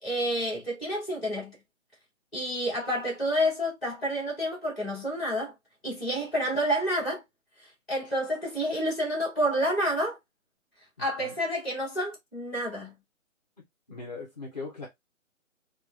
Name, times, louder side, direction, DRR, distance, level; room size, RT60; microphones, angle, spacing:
voice 1, 0.0-1.5 2.3-5.5 5.8-7.2 7.6-10.2 11.0-12.9, equal, ahead, 1.6 m, -29 dB
voice 2, 13.9-14.9, left 3 dB, 30° left, 0.7 m, -38 dB
4.3 x 2.4 x 2.3 m
hypercardioid pair, 170°, 41 cm